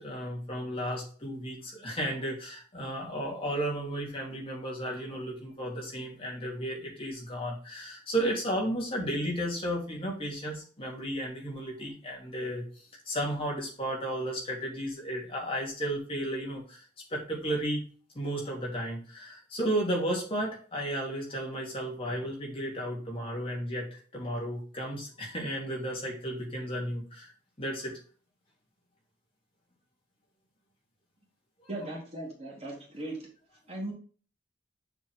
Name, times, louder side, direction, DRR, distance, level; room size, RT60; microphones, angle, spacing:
voice 1, 0.0-12.6 13.0-16.8 17.1-17.8 18.1-27.3 27.6-28.0, right 1 dB, 30° left, -2 dB, 3.2 m, -33 dB
voice 2, 31.7-33.2 33.7-33.9, right 1 dB, 35° right, -2 dB, 3.4 m, -38 dB
7.0 x 5.8 x 3.8 m, 0.40 s
head